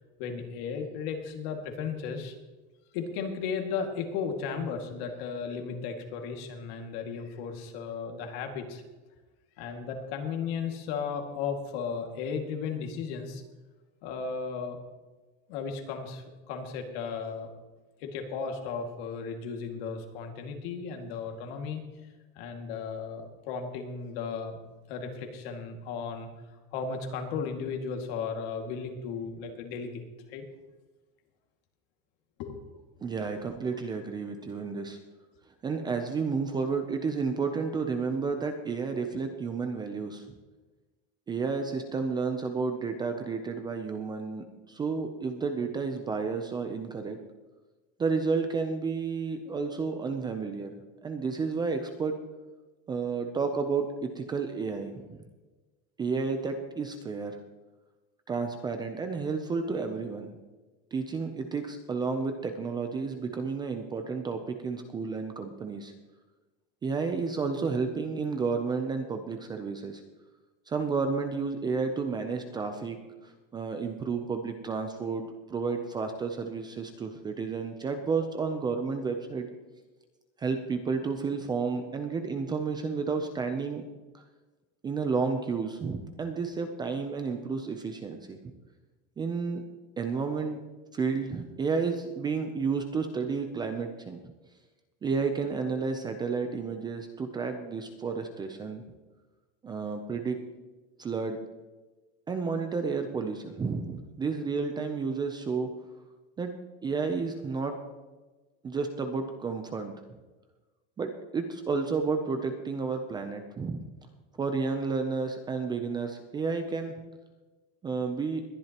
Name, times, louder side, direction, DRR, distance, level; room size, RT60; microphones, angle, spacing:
voice 1, 0.2-2.3 2.9-8.8 9.6-13.4 14.0-14.8 15.5-17.5 18.0-21.8 22.4-24.6 24.9-26.3 26.7-30.5 32.4-32.6, left 5 dB, 60° left, 4 dB, 2.1 m, -35 dB
voice 2, 33.0-35.0 35.6-40.2 41.3-47.2 48.0-50.8 51.0-52.1 52.9-55.2 56.0-57.3 58.3-60.3 60.9-65.9 66.8-70.0 70.7-73.0 73.2-79.5 80.4-83.8 84.1-84.2 84.8-88.5 89.2-89.6 90.0-90.6 90.9-94.2 95.0-98.8 99.6-100.4 101.0-101.4 102.3-105.7 106.4-106.5 106.8-107.8 108.6-109.9 111.0-113.8 114.4-117.0 117.8-118.4, right 4 dB, 15° right, 6 dB, 0.5 m, -31 dB
21.0 x 11.0 x 2.9 m, 1.2 s
cardioid pair, 175°, 34 cm